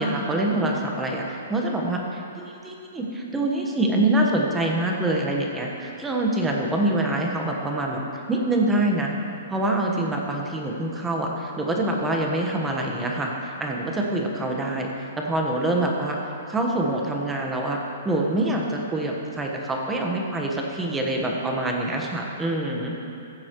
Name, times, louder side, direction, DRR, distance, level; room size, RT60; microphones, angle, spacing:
voice 1, 0.0-8.0 8.3-9.2 9.5-14.9 15.2-16.2 16.5-17.8 18.0-23.0, right 1 dB, 10° right, 0 dB, 1.3 m, -25 dB
15.0 x 7.6 x 3.1 m, 2.7 s
hypercardioid pair, 135°, 0 cm